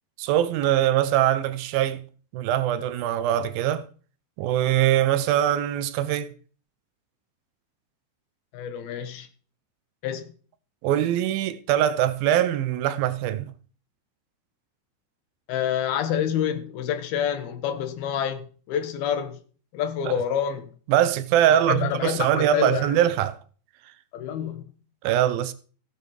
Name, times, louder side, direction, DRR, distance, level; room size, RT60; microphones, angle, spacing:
voice 1, 0.2-2.0 2.3-3.8 4.4-6.3 10.8-13.5 20.1-20.2 20.9-23.4 25.0-25.5, right 11 dB, 80° right, 2.6 m, -22 dB
voice 2, 8.5-9.3 10.0-10.3 15.5-19.4 19.7-20.7 21.5-22.9 24.1-24.6, left 9 dB, 85° left, 3.3 m, -27 dB
15.5 x 9.2 x 4.9 m
omnidirectional pair, 4.3 m